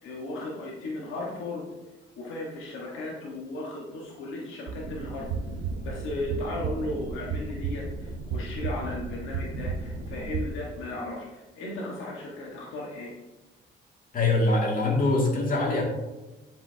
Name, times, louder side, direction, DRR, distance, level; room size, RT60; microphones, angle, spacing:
voice 1, 0.0-1.6 2.2-5.3 5.8-13.1, left 2 dB, 90° left, -2 dB, 1.4 m, -36 dB
sound 1, 4.7-10.5, right 4 dB, 80° right, 0.8 m, -33 dB
voice 2, 14.1-15.8, left 2 dB, 45° left, -1 dB, 2.3 m, -23 dB
10.5 x 5.5 x 2.8 m, 1.1 s
cardioid pair, 90°, 20 cm